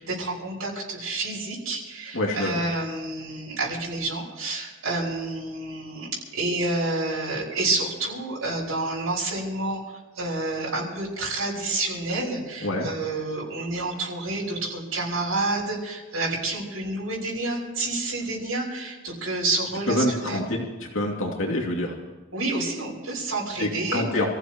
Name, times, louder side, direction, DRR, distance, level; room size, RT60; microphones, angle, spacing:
voice 1, 0.0-9.8 10.1-20.4 22.3-24.0, right 2 dB, 85° right, -5 dB, 6.0 m, -29 dB
voice 2, 2.1-2.5 12.6-12.9 19.9-20.6 20.9-21.9 23.6-24.3, left 1 dB, 65° left, -1 dB, 2.7 m, -26 dB
27.5 x 15.5 x 3.1 m, 1.3 s
head